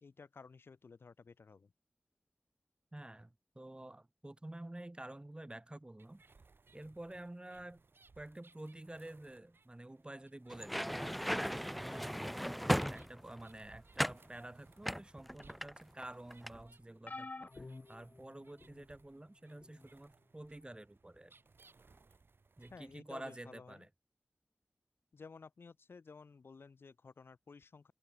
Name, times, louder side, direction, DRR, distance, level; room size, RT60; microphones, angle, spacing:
voice 1, 0.0-1.7 22.7-23.8 25.1-27.9, left 4 dB, 90° left, 1.5 m, -55 dB
voice 2, 2.9-6.2 6.7-7.8 8.2-10.9 11.4-21.3 22.6-23.9, right 1 dB, 25° right, 2.0 m, -50 dB
sound 1, 6.0-23.0, right 4 dB, 70° right, 1.7 m, -66 dB
sound 2, 10.5-13.4 14.0-14.3 14.8-16.0 16.3-16.6, equal, ahead, 0.6 m, -36 dB
sound 3, 17.1-18.9 19.6-19.9 21.1-21.2, left 3 dB, 45° left, 0.9 m, -49 dB
open air
cardioid pair, 45°, 4 cm